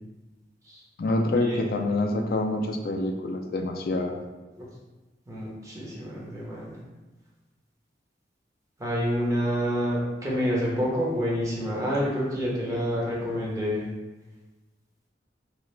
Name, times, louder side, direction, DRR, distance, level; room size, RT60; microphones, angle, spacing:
voice 1, 1.0-4.2, left 2 dB, 55° left, 3 dB, 0.3 m, -26 dB
voice 2, 5.3-6.7 8.8-13.8, equal, 20° right, -5 dB, 0.7 m, -28 dB
2.8 x 2.4 x 3.2 m, 1.2 s
head